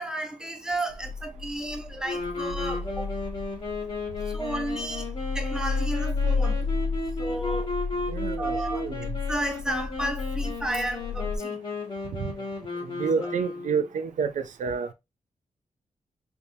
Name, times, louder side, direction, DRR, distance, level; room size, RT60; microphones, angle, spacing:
voice 1, 0.0-3.1 4.3-5.1 5.3-6.7 7.2-7.7 8.4-8.9 9.3-11.6 13.2-13.3, right 1 dB, 5° right, 0.5 m, -32 dB
sound 1, 0.9-11.4, left 4 dB, 65° left, 0.8 m, -32 dB
sound 2, 2.0-13.9, left 3 dB, 40° left, 1.2 m, -34 dB
voice 2, 8.1-9.2 12.1-12.3 12.8-14.9, right 6 dB, 80° right, 0.4 m, -29 dB
3.4 x 2.7 x 2.7 m
wide cardioid pair, 175°, 13 cm